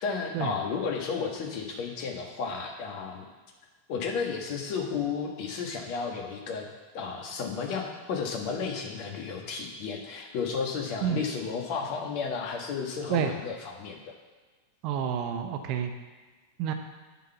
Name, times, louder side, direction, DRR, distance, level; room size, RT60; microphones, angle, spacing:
voice 1, 0.0-3.3 3.9-6.7 6.9-14.1, left 5 dB, 45° left, 1 dB, 1.4 m, -33 dB
voice 2, 14.8-15.9 16.6-16.7, right 9 dB, 40° right, 6 dB, 0.8 m, -28 dB
9.2 x 4.0 x 6.7 m, 1.4 s
figure-of-eight pair, 90°, 0 cm